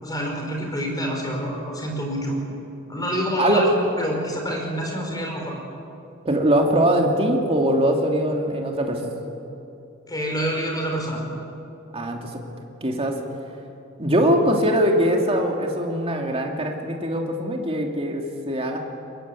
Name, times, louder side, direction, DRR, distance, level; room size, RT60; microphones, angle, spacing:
voice 1, 0.0-2.3 2.9-5.5 10.1-11.2, equal, 20° left, 1 dB, 5.1 m, -27 dB
voice 2, 6.2-9.2 11.9-12.4 12.8-13.2 14.0-18.8, right 1 dB, 30° right, 1 dB, 2.7 m, -22 dB
22.5 x 21.5 x 8.5 m, 2.7 s
head